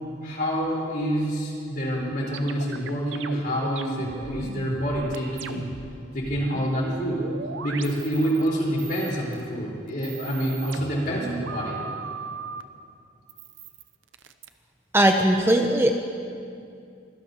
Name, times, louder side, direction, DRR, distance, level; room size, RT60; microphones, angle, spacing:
voice 1, 0.2-5.6 6.1-7.2 7.6-11.8, equal, 50° left, -4 dB, 4.5 m, -27 dB
sound 1, 2.0-5.9 6.2-8.5 8.8-9.4 9.9-12.6 13.3-14.5, right 4 dB, 75° right, 0.7 m, -38 dB
voice 2, 14.9-16.0, right 1 dB, 10° right, 4 dB, 0.6 m, -19 dB
25.0 x 16.5 x 3.0 m, 2.5 s
head